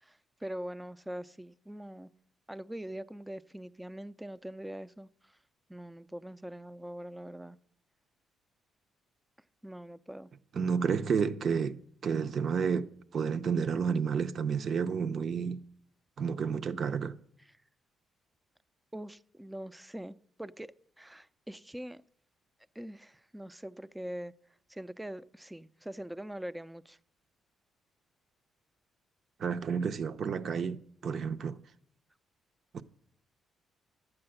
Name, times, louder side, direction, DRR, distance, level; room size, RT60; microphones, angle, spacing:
voice 1, 0.0-2.1 2.5-5.3 5.7-7.6 9.6-10.3 18.9-20.7 21.0-22.0 22.7-24.3 24.7-27.0, right 1 dB, 5° right, 0.4 m, -43 dB
voice 2, 10.5-15.6 16.2-17.2 29.4-31.6 32.7-32.8, right 6 dB, 55° right, 0.7 m, -31 dB
12.0 x 8.8 x 7.8 m
cardioid pair, 95°, 0 cm